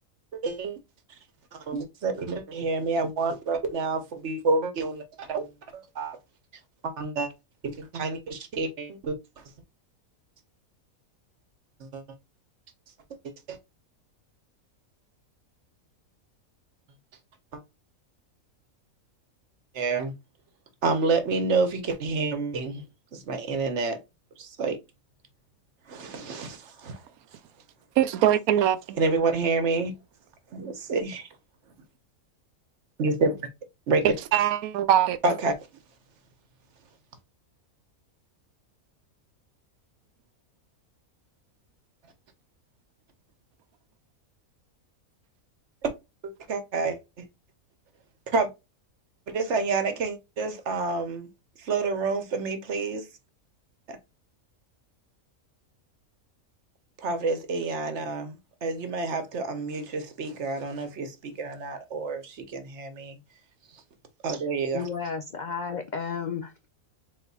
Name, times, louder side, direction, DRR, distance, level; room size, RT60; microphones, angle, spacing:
voice 1, 0.3-0.8 1.5-5.5 5.7-6.2 6.8-7.3 7.6-9.4 11.8-12.0 13.2-13.6 17.5-17.6 19.7-20.1 20.8-22.8 23.1-24.0 24.4-24.8 25.9-27.0 29.0-29.9 30.5-31.3 33.0-33.5 33.9-34.1 35.2-35.5 45.8-45.9 46.2-47.3 48.3-48.5 49.3-51.3 51.6-53.0 53.9-54.0 57.0-63.2 64.2-64.9, right 3 dB, 55° right, 1.1 m, -28 dB
voice 2, 28.0-29.0 34.0-35.2, right 11 dB, 85° right, 1.1 m, -22 dB
voice 3, 64.7-66.7, left 6 dB, 85° left, 0.4 m, -33 dB
4.1 x 4.0 x 2.3 m
omnidirectional pair, 1.5 m